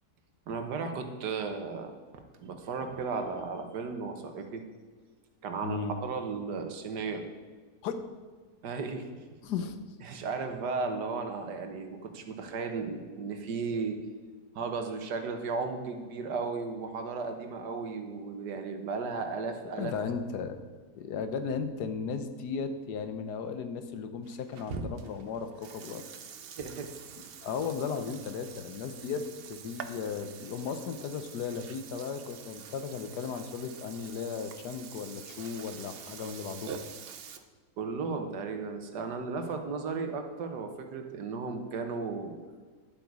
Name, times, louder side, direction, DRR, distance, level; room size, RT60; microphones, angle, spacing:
voice 1, 0.5-1.9 2.4-4.6 5.4-7.3 8.6-9.2 10.0-14.0 14.5-19.9 24.7-24.9 26.6-26.9 29.1-29.2 37.8-42.3, right 4 dB, 90° right, 5 dB, 1.7 m, -35 dB
voice 2, 5.6-6.0 7.8-8.1 9.4-9.8 19.8-26.0 27.4-36.8, left 6 dB, 80° left, 9 dB, 1.4 m, -36 dB
Burping eructation, 24.2-37.4, right 7 dB, 60° right, 0.6 m, -47 dB
11.0 x 8.0 x 4.8 m, 1.5 s
omnidirectional pair, 1.7 m